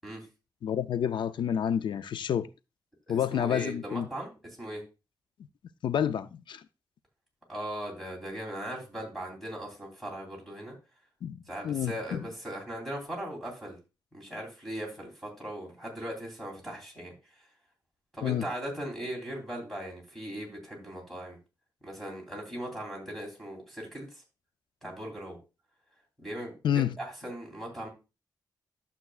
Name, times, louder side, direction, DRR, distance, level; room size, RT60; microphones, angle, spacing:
voice 1, 0.6-2.5 3.1-4.1 5.8-6.6 11.2-12.2 18.2-18.4 26.6-26.9, left 9 dB, 90° left, 0.4 m, -29 dB
voice 2, 3.1-4.8 7.5-10.7 11.5-13.8 14.1-17.4 18.1-21.4 21.8-24.2 24.8-25.4 26.2-27.9, right 1 dB, ahead, 3.2 m, -39 dB
11.5 x 7.1 x 2.4 m
wide cardioid pair, 140°, 8 cm